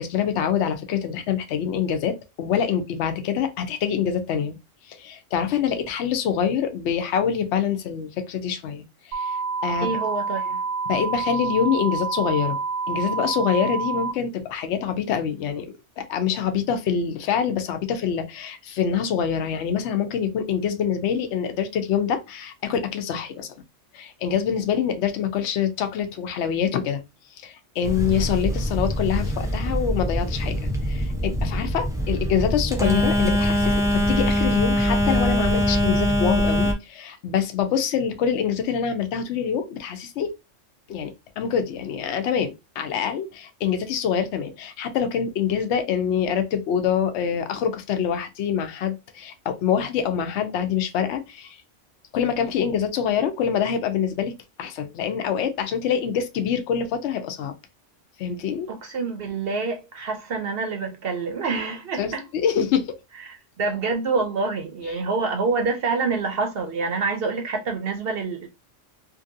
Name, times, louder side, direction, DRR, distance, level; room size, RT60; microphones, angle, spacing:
voice 1, 0.0-4.6 4.9-9.9 10.9-12.6 12.9-15.7 16.0-23.5 23.9-27.0 27.4-30.6 30.9-40.3 40.9-51.6 52.1-57.5 58.2-58.7 62.0-62.1 62.4-62.9, left 8 dB, 70° left, 0.9 m, -25 dB
sound 1, 9.1-14.1, right 4 dB, 80° right, 1.0 m, -28 dB
voice 2, 9.8-10.6 58.7-62.2 63.3-68.5, right 4 dB, 60° right, 0.7 m, -27 dB
Telephone, 27.8-36.7, equal, 5° right, 0.4 m, -23 dB
2.7 x 2.6 x 2.6 m
omnidirectional pair, 1.3 m